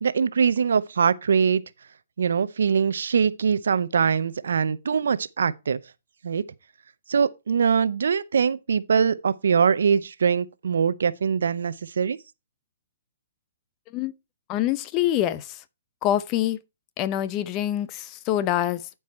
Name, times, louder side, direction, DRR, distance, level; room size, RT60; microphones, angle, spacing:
voice 1, 0.0-1.6 2.2-5.8 6.2-6.4 7.1-12.2, right 6 dB, 75° right, 0.6 m, -22 dB
voice 2, 14.5-15.6 16.0-16.6 17.0-18.9, left 12 dB, 30° left, 0.7 m, -25 dB
11.0 x 4.8 x 4.3 m
hypercardioid pair, 125°, 0 cm